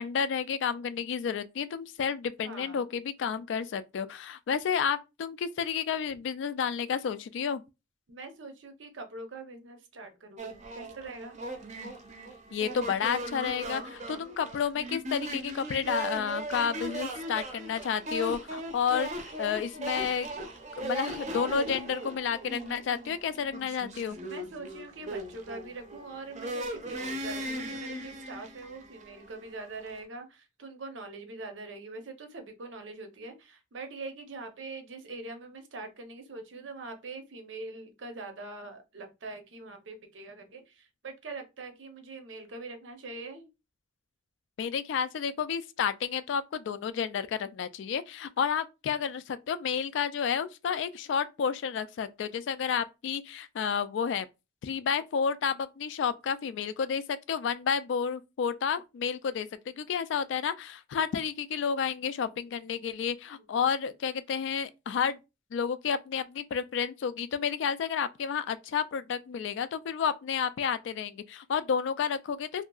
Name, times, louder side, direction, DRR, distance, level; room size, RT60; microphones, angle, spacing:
voice 1, 0.0-7.6 12.5-20.3 20.7-24.2 44.6-54.3 54.6-65.2 65.5-72.6, left 7 dB, 70° left, 0.3 m, -31 dB
voice 2, 2.4-2.8 8.1-11.4 24.2-43.5, right 3 dB, 90° right, 0.7 m, -43 dB
sound 1, 10.4-30.0, right 1 dB, 40° right, 0.5 m, -38 dB
2.7 x 2.4 x 2.3 m
head